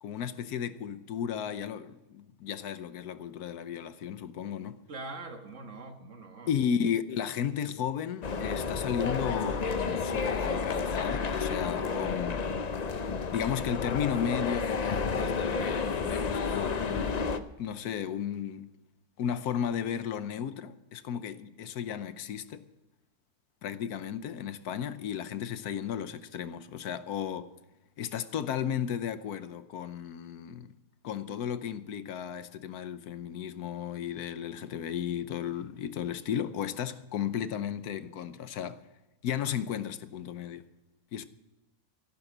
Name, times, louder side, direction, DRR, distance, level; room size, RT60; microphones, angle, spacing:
voice 1, 0.0-4.8 6.5-12.5 12.9-13.0 13.3-18.7 19.2-22.6 23.6-27.5 28.0-30.7 31.0-38.8 39.2-40.7 41.1-41.2, left 8 dB, 85° left, 1.3 m, -34 dB
voice 2, 4.9-6.5, right 3 dB, 55° right, 1.7 m, -43 dB
sound 1, 8.2-17.4, left 5 dB, 50° left, 0.5 m, -31 dB
14.5 x 12.0 x 6.0 m
omnidirectional pair, 1.6 m